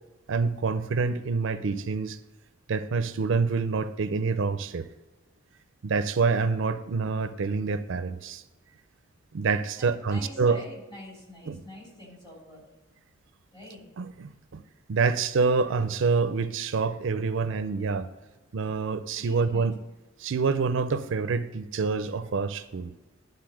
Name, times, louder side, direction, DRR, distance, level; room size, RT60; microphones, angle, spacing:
voice 1, 0.3-2.2 2.7-4.9 5.8-8.4 9.3-10.6 11.5-11.6 14.0-14.6 14.9-18.1 18.5-19.7 20.2-22.9, right 4 dB, 65° right, 12 dB, 0.4 m, -27 dB
voice 2, 9.8-12.6 13.5-13.8 19.2-19.7, equal, 25° left, -4 dB, 3.2 m, -45 dB
11.5 x 4.0 x 6.2 m, 1.1 s
head